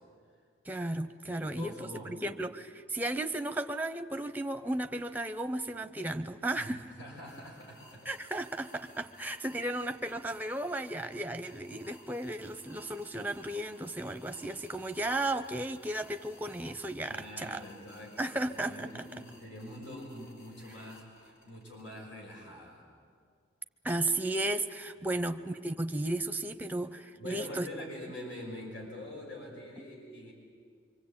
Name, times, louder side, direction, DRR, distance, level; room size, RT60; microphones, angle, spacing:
voice 1, 0.7-6.8 8.1-17.6 18.2-19.1 23.8-27.7, right 1 dB, 10° right, 9 dB, 0.8 m, -34 dB
voice 2, 1.3-2.3 6.6-6.7 7.0-8.1 17.1-22.8 25.0-25.1 27.2-30.3, left 1 dB, 80° left, -1 dB, 5.8 m, -45 dB
sound 1, 7.2-22.0, left 1 dB, 55° left, 5.1 m, -59 dB
25.0 x 24.5 x 8.8 m, 2.1 s
head